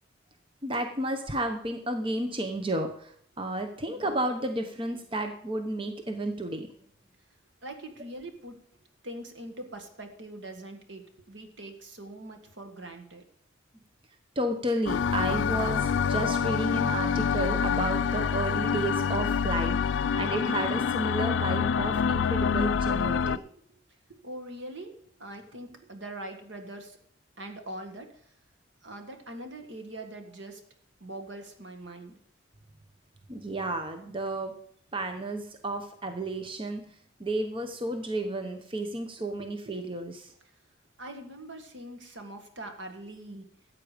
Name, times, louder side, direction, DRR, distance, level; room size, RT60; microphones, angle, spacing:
voice 1, 0.6-6.7 14.4-23.4 33.3-34.5 34.9-36.8 37.2-40.3, right 1 dB, 25° right, 5 dB, 0.9 m, -32 dB
voice 2, 7.6-8.6 9.0-13.2 23.0-23.1 23.7-23.8 24.1-27.0 27.4-28.1 28.8-30.6 31.0-32.2 39.4-39.8 41.0-43.5, right 1 dB, 65° right, 6 dB, 1.7 m, -42 dB
sound 1, 14.9-23.4, left 6 dB, 65° left, 0.4 m, -26 dB
14.0 x 8.4 x 5.1 m, 0.64 s
head